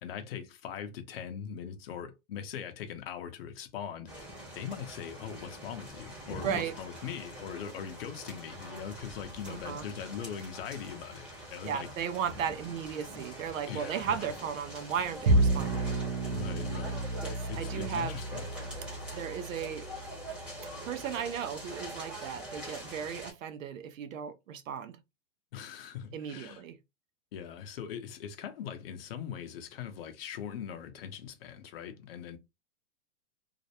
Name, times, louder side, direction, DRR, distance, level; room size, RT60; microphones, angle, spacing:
voice 1, 0.0-11.9 13.7-14.3 16.3-18.4 25.5-26.6 27.3-32.4, left 8 dB, 50° left, 0.6 m, -41 dB
sound 1, 4.1-23.3, right 1 dB, 5° right, 0.7 m, -44 dB
voice 2, 9.5-9.9 11.6-16.0 17.2-18.2 19.1-19.9 20.8-25.0 26.1-26.8, right 8 dB, 85° right, 0.6 m, -36 dB
Bowed string instrument, 15.3-21.7, right 2 dB, 40° right, 0.4 m, -32 dB
2.5 x 2.0 x 2.7 m
hypercardioid pair, 160°, 38 cm